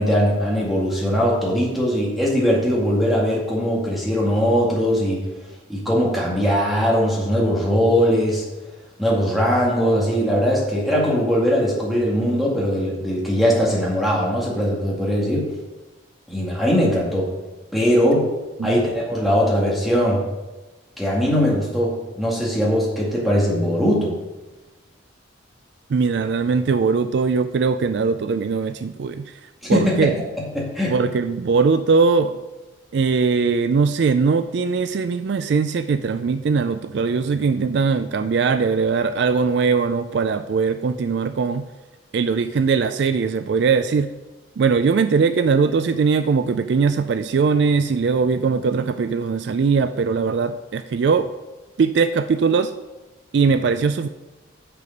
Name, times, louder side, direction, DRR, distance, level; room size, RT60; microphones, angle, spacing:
voice 1, 0.0-5.2 5.7-8.4 9.0-15.5 16.3-17.3 17.7-18.3 18.6-20.2 21.0-24.1 29.7-30.1 30.5-30.9, equal, ahead, -5 dB, 2.0 m, -20 dB
voice 2, 25.9-30.1 30.9-32.4 32.9-41.6 42.1-44.1 44.6-51.3 51.8-52.7 53.3-54.1, right 5 dB, 60° right, 11 dB, 0.3 m, -20 dB
6.8 x 6.7 x 5.2 m, 1.1 s
head